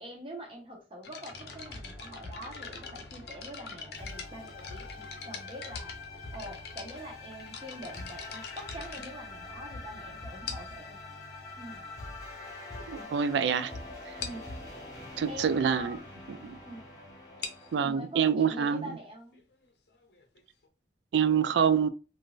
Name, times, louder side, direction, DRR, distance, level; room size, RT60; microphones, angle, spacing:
voice 1, 0.0-4.9 5.2-5.9 6.3-11.0 11.6-11.8 14.2-14.5 15.3-16.1 16.6-16.9 17.8-19.4, equal, 30° right, 1.0 m, -44 dB
sound 1, 1.0-9.9 10.5-10.9 11.7-11.8 12.4-12.5 12.8-13.0 13.3-13.4 13.7-13.8 14.2-14.5 17.2-20.7, left 6 dB, 65° left, 0.6 m, -44 dB
sound 2, 1.3-17.8, left 2 dB, 20° left, 1.2 m, -44 dB
voice 2, 12.9-13.7 15.2-16.0 16.3-16.6 17.7-18.8 21.1-21.9, right 7 dB, 80° right, 0.3 m, -26 dB
3.7 x 2.5 x 2.4 m
head